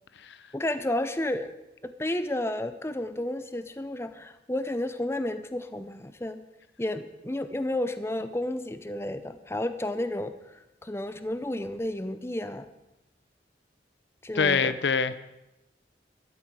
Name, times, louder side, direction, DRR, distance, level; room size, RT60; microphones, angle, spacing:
voice 1, 0.5-1.6 1.8-6.4 6.8-12.7 14.2-14.7, left 1 dB, 15° left, 0.6 m, -31 dB
voice 2, 14.3-15.1, left 5 dB, 75° left, 0.6 m, -24 dB
14.0 x 12.5 x 4.8 m
head